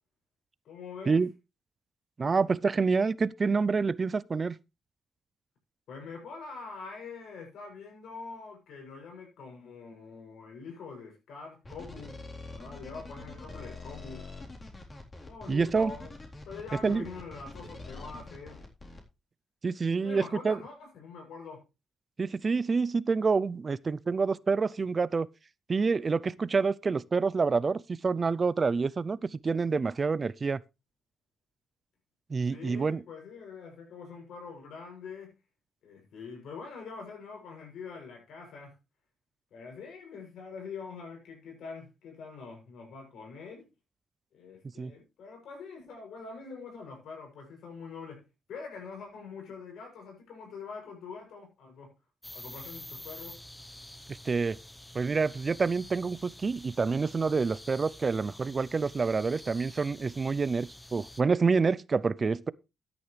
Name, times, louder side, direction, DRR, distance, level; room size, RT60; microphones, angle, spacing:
voice 1, 0.6-1.3 5.9-14.3 15.3-16.1 16.5-18.7 20.0-21.7 32.5-35.4 35.8-38.8 39.5-43.7 44.3-51.9 52.3-53.4, left 5 dB, 80° left, 7.3 m, -44 dB
voice 2, 2.2-4.6 15.5-15.9 16.8-17.1 19.6-20.6 22.2-25.3 25.7-30.6 32.3-33.0 44.8-44.9 54.3-54.6 54.9-62.5, right 4 dB, 40° right, 0.5 m, -27 dB
sound 1, 11.6-19.0, left 3 dB, 35° left, 3.8 m, -45 dB
sound 2, 52.2-61.2, left 1 dB, 10° left, 0.9 m, -48 dB
13.5 x 9.9 x 3.3 m
cardioid pair, 80°, 0 cm